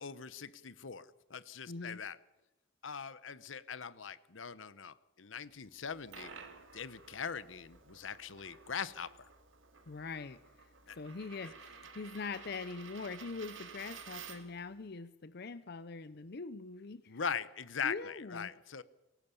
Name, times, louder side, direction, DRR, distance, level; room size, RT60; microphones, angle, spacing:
voice 1, 0.0-2.2 2.8-6.3 6.7-9.1 10.9-11.0 11.4-11.5 17.1-18.8, left 6 dB, 80° left, 16 dB, 0.9 m, -41 dB
voice 2, 1.7-2.0 9.9-10.4 10.9-17.2 17.8-18.5, left 4 dB, 55° left, 14 dB, 0.6 m, -43 dB
Coin (dropping), 5.8-14.6, right 6 dB, 90° right, 2.5 m, -53 dB
23.0 x 18.5 x 7.0 m, 1.0 s
head